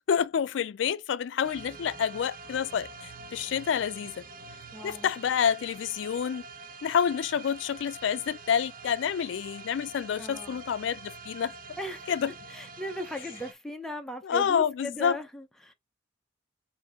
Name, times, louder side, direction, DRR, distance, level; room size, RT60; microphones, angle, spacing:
voice 1, 0.0-4.2 4.8-6.4 6.8-11.5 12.1-12.3 14.2-15.2, left 7 dB, 75° left, 0.3 m, -28 dB
sound 1, 1.4-13.5, right 3 dB, 50° right, 0.7 m, -46 dB
voice 2, 4.7-5.1 10.2-10.6 11.8-12.2 12.5-15.7, left 1 dB, 5° left, 0.6 m, -38 dB
5.2 x 2.7 x 3.5 m
head